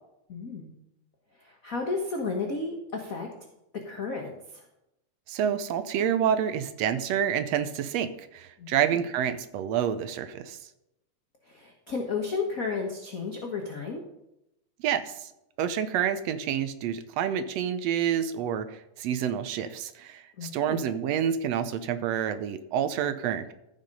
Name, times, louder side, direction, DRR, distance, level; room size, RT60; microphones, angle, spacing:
voice 1, 0.3-0.7 1.4-3.3 3.7-4.6 8.6-9.0 11.4-14.0 20.4-20.8, left 4 dB, 55° left, 1 dB, 0.9 m, -33 dB
voice 2, 5.3-10.6 14.8-15.3 15.6-23.5, right 9 dB, 75° right, 11 dB, 1.7 m, -28 dB
14.0 x 5.8 x 5.3 m, 0.86 s
omnidirectional pair, 3.4 m